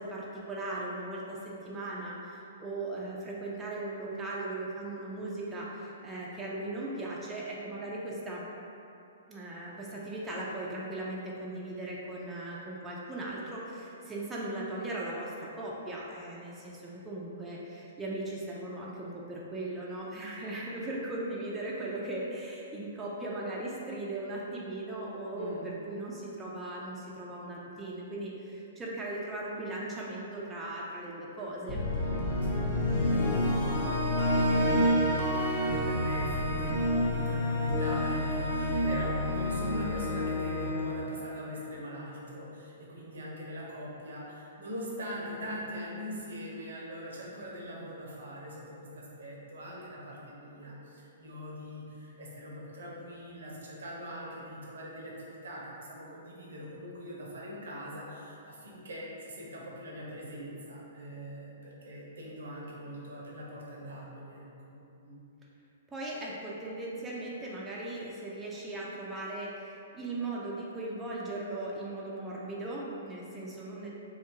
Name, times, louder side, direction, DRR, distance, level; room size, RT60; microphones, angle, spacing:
voice 1, 0.0-8.4 9.3-31.8 65.9-73.9, right 2 dB, 15° right, -5 dB, 0.4 m, -38 dB
voice 2, 25.3-25.7 32.4-64.8 65.0-65.2, equal, 70° right, -4 dB, 0.6 m, -42 dB
sound 1, 31.7-41.9, left 1 dB, 45° left, 0.6 m, -29 dB
2.8 x 2.3 x 2.7 m, 2.7 s
figure-of-eight pair, 115°, 0 cm